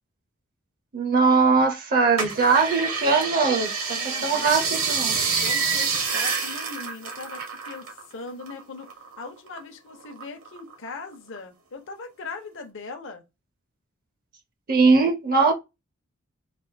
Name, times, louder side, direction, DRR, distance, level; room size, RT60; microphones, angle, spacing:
voice 1, 0.9-5.2 14.7-15.5, right 4 dB, 45° right, 0.6 m, -21 dB
sound 1, 2.2-8.0 8.3-9.6 10.0-10.9 11.4-11.5, right 5 dB, 75° right, 1.3 m, -27 dB
voice 2, 3.9-4.6 5.4-8.9 9.2-13.2, left 4 dB, 60° left, 0.8 m, -40 dB
3.3 x 2.6 x 4.0 m
head